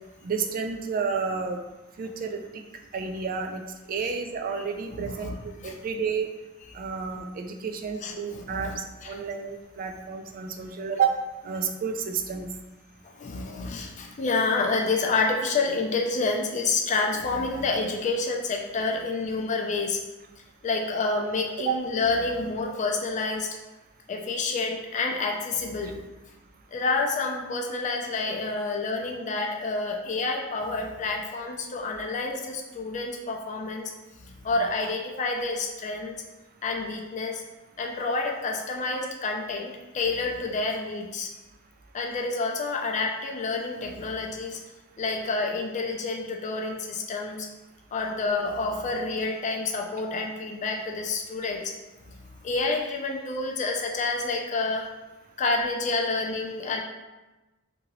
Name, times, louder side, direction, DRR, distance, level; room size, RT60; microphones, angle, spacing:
voice 1, 0.2-1.6 2.0-2.6 2.9-3.6 3.9-6.3 6.7-12.5 21.7-21.8, right 6 dB, 40° right, 4 dB, 0.3 m, -30 dB
voice 2, 5.0-5.3 5.6-5.8 8.0-9.2 13.0-20.0 20.6-23.5 24.1-26.0 26.7-33.9 34.2-36.2 36.6-37.4 37.8-41.3 41.9-44.6 45.0-47.5 47.9-51.7 52.1-52.2 52.4-54.9 55.4-56.8, left 3 dB, 35° left, 1 dB, 0.3 m, -28 dB
2.8 x 2.6 x 2.9 m, 1.1 s
head